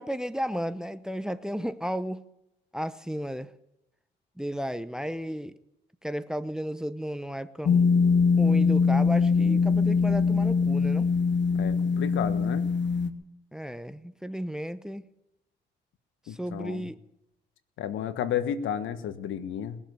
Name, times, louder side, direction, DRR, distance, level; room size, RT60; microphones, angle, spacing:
voice 1, 0.0-2.2 2.7-3.5 4.4-5.5 6.0-7.8 8.4-11.1 13.5-15.1 16.3-17.0, equal, 5° right, 13 dB, 0.8 m, -33 dB
sound 1, 7.7-13.1, left 5 dB, 65° left, 1.3 m, -22 dB
voice 2, 11.5-12.6 16.3-16.9 17.8-19.8, left 9 dB, 80° left, 11 dB, 1.4 m, -32 dB
21.0 x 7.3 x 9.5 m, 0.86 s
cardioid pair, 90°, 20 cm